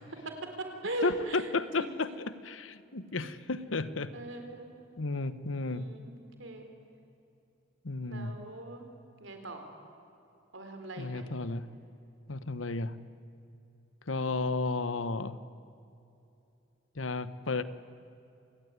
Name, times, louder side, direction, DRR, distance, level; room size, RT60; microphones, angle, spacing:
voice 1, 0.2-1.5 1.8-2.2 3.1-3.3 4.1-4.7 5.6-6.7 8.1-8.9 9.2-9.7 10.5-11.3 14.2-14.4, right 1 dB, 75° right, 6 dB, 4.0 m, -40 dB
voice 2, 1.0-4.1 5.0-5.9 7.8-8.4 11.0-11.7 12.3-13.0 14.1-15.4 16.9-17.6, left 3 dB, 85° left, 14 dB, 1.1 m, -33 dB
27.5 x 19.5 x 9.5 m, 2.8 s
head